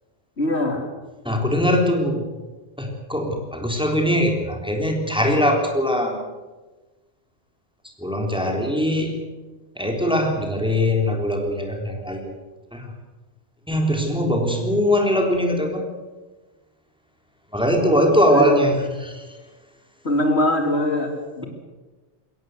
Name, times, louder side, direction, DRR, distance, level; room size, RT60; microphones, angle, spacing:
voice 1, 0.4-0.9 18.3-18.5 20.0-21.4, left 1 dB, 70° left, 4 dB, 3.4 m, -22 dB
voice 2, 1.2-2.3 2.8-6.2 8.0-9.2 9.8-12.3 12.7-12.9 13.7-15.9 17.5-19.4, equal, 5° right, 2 dB, 3.6 m, -21 dB
22.0 x 18.0 x 7.9 m, 1.2 s
omnidirectional pair, 1.2 m